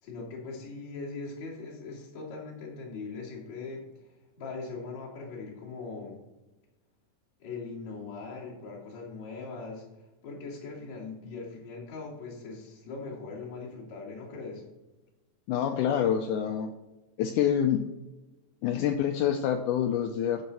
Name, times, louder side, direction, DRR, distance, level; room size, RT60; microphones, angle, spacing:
voice 1, 0.0-6.2 7.4-9.8 10.2-14.6, left 4 dB, 55° left, -5 dB, 3.9 m, -40 dB
voice 2, 15.5-16.7 17.2-17.9 18.6-20.4, left 9 dB, 80° left, 6 dB, 2.0 m, -27 dB
14.0 x 5.6 x 4.2 m, 1.1 s
omnidirectional pair, 4.0 m